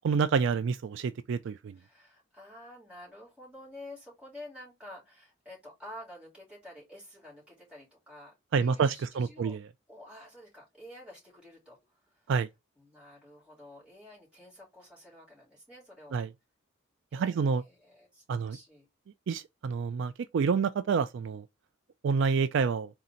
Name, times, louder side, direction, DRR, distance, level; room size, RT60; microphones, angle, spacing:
voice 1, 0.0-1.7 8.5-9.6 12.3-12.5 16.1-16.3 17.1-17.6 18.3-18.6 19.3-21.4 22.0-22.9, right 5 dB, 60° right, 0.3 m, -28 dB
voice 2, 1.7-9.6 9.9-12.3 12.7-16.2 17.1-18.9, left 1 dB, 5° right, 3.0 m, -50 dB
4.1 x 2.8 x 3.7 m
head